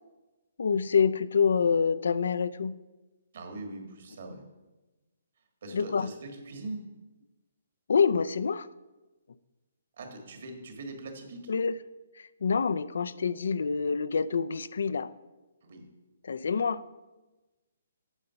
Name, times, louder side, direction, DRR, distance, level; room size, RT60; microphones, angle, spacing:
voice 1, 0.6-2.8 5.7-6.1 7.9-8.7 11.5-11.7 12.2-15.1 16.2-16.8, left 6 dB, 75° left, 15 dB, 0.4 m, -26 dB
voice 2, 3.3-4.4 5.6-6.8 10.0-11.5 15.6-15.9, right 2 dB, 60° right, 4 dB, 1.7 m, -41 dB
8.9 x 5.4 x 5.7 m, 1.1 s
hypercardioid pair, 160°, 0 cm